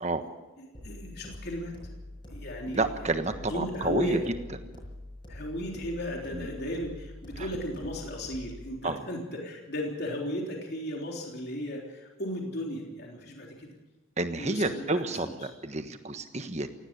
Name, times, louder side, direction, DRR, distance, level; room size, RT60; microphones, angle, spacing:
voice 1, 0.6-1.7 2.3-3.1 3.4-4.2 5.3-13.7 14.4-15.4, equal, 50° left, 0 dB, 3.5 m, -35 dB
sound 1, 0.7-8.7, left 1 dB, 25° left, 6.9 m, -45 dB
voice 2, 2.7-4.2 6.3-6.5 7.4-7.5 8.8-9.0 14.2-16.7, right 2 dB, 30° right, 8 dB, 1.3 m, -30 dB
17.5 x 17.0 x 8.8 m, 1.1 s
head